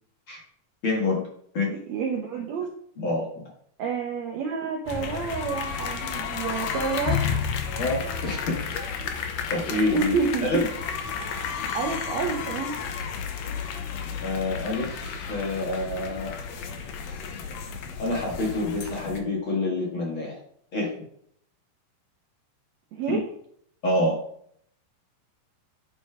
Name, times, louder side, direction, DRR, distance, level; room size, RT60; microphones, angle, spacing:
voice 1, 0.8-1.2 1.5-1.7 3.0-3.3 7.8-8.8 9.5-10.1 10.4-10.6 14.2-16.3 18.0-20.4 20.7-21.0 23.8-24.2, left 2 dB, 45° left, -2 dB, 1.9 m, -27 dB
voice 2, 1.7-2.7 3.8-7.4 9.9-10.7 11.7-12.8 22.9-23.3, right 5 dB, 75° right, 1 dB, 1.7 m, -29 dB
sound 1, 4.9-19.2, left 6 dB, 70° left, 1.8 m, -32 dB
9.6 x 4.3 x 4.8 m, 0.66 s
omnidirectional pair, 4.0 m